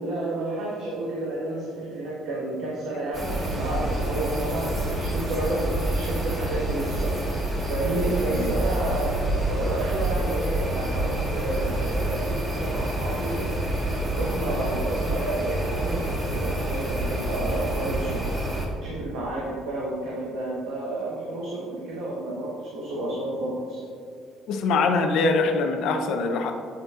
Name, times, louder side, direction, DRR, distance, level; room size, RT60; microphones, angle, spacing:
voice 1, 0.0-7.1 7.7-9.2 9.5-13.7 14.1-18.2 18.8-23.8, right 1 dB, 80° right, -5 dB, 1.1 m, -30 dB
sound 1, 3.1-18.7, right 1 dB, 30° right, 1.4 m, -27 dB
voice 2, 24.5-26.5, left 3 dB, 70° left, 5 dB, 0.6 m, -23 dB
7.9 x 5.3 x 2.4 m, 2.3 s
cardioid pair, 110°, 0 cm